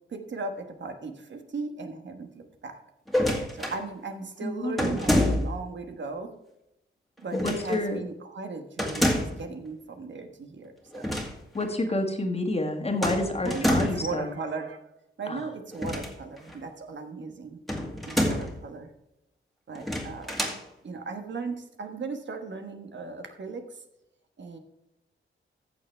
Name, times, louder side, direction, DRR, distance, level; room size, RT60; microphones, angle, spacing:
voice 1, 0.1-2.3 2.6-2.8 3.5-6.3 7.2-11.1 11.9-12.0 13.4-14.8 15.2-17.6 18.0-18.9 19.7-20.3 20.8-23.8 24.4-24.6, right 4 dB, 60° right, 6 dB, 1.4 m, -37 dB
sound 1, 3.1-3.8 4.8-5.7 7.3-7.8 8.8-9.5 10.9-11.3 11.6-11.7 13.0-14.1 15.7-16.5 17.7-18.6 19.7-20.6, left 1 dB, ahead, 2.0 m, -27 dB
voice 2, 4.4-5.0 7.3-8.0 11.5-14.3 15.2-15.5, left 2 dB, 30° left, 4 dB, 1.7 m, -29 dB
14.5 x 7.0 x 3.4 m, 0.86 s
wide cardioid pair, 135°, 21 cm